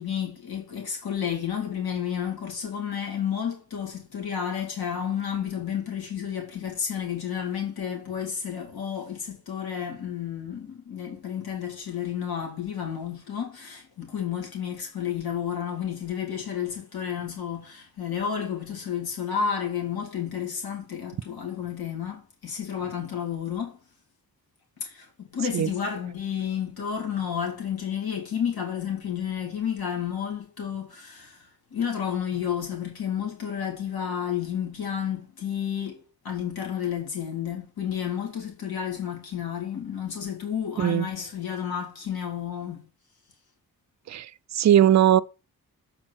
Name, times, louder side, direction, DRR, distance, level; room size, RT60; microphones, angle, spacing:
voice 1, 0.0-23.8 24.8-36.0 36.2-42.8, left 8 dB, 85° left, 2.6 m, -31 dB
voice 2, 40.8-41.1 44.1-45.2, right 11 dB, 50° right, 0.4 m, -20 dB
7.5 x 4.5 x 6.1 m
wide cardioid pair, 160°, 36 cm